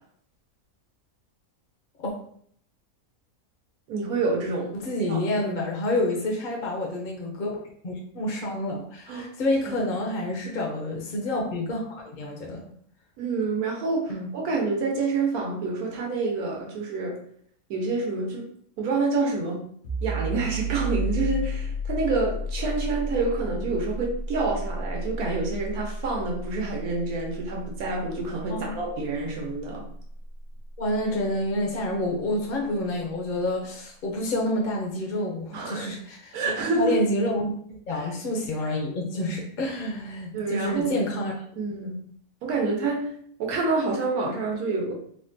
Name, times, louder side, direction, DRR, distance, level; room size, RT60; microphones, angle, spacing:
voice 1, 3.9-5.2 5.4-5.6 9.1-9.3 9.7-10.0 13.2-17.2 17.7-18.4 18.8-19.6 20.0-29.9 35.5-35.9 36.3-37.0 37.9-38.1 40.3-40.9 41.6-42.0 42.4-43.1 43.4-44.9, right 3 dB, 90° right, -1 dB, 1.3 m, -28 dB
voice 2, 4.7-12.6 14.1-14.3 28.5-28.7 30.8-36.4 36.7-41.4, left 1 dB, 60° left, 0 dB, 0.5 m, -28 dB
sound 1, 19.8-31.3, right 1 dB, 90° left, 1.3 m, -33 dB
3.5 x 2.1 x 2.6 m, 0.63 s
omnidirectional pair, 1.5 m